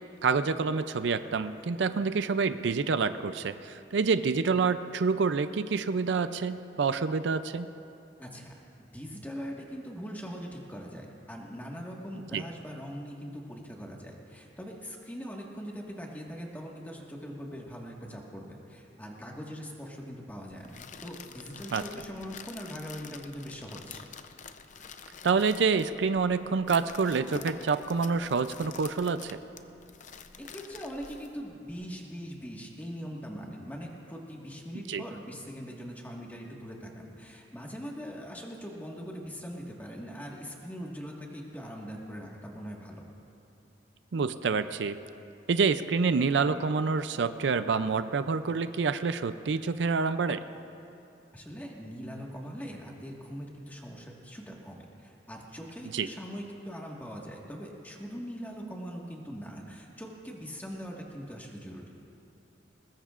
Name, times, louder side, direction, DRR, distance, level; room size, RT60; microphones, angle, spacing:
voice 1, 0.2-7.7 12.3-12.4 21.7-21.8 25.2-29.4 34.9-35.0 44.1-45.0 45.5-50.4 55.9-56.1, right 5 dB, 75° right, 11 dB, 0.4 m, -27 dB
voice 2, 8.2-8.5 8.8-24.0 30.4-43.0 51.3-61.9, equal, 10° left, -1 dB, 1.6 m, -41 dB
sound 1, 20.6-31.9, left 6 dB, 45° left, 0.6 m, -47 dB
21.0 x 20.5 x 2.5 m, 2.7 s
head